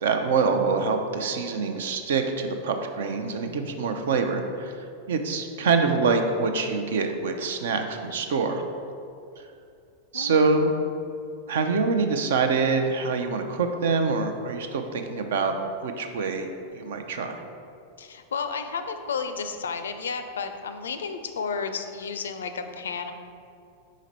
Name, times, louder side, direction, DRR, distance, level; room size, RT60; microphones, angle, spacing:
voice 1, 0.0-8.6 9.4-9.5 10.1-10.7 11.5-15.6 15.8-16.5 16.7-17.4, right 4 dB, 60° right, 6 dB, 0.5 m, -25 dB
voice 2, 10.1-10.5 18.0-23.1, left 5 dB, 65° left, 8 dB, 0.4 m, -32 dB
5.1 x 5.0 x 4.1 m, 2.5 s
figure-of-eight pair, 90°, 0 cm